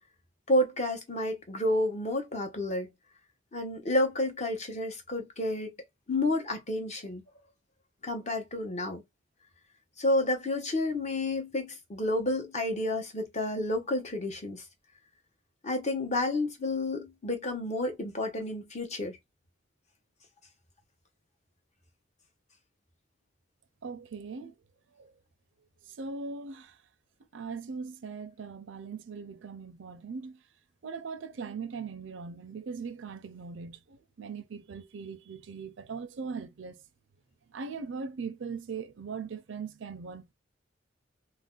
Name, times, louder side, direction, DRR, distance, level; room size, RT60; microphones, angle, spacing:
voice 1, 0.5-2.9 3.5-5.7 6.1-7.2 8.0-9.0 10.0-14.6 15.6-19.2, left 1 dB, 40° left, 0.9 m, -30 dB
voice 2, 23.8-24.5 25.0-25.1 25.9-26.8 27.3-30.4 30.8-36.8 37.5-40.3, right 5 dB, 85° right, 0.5 m, -40 dB
2.5 x 2.1 x 3.7 m
head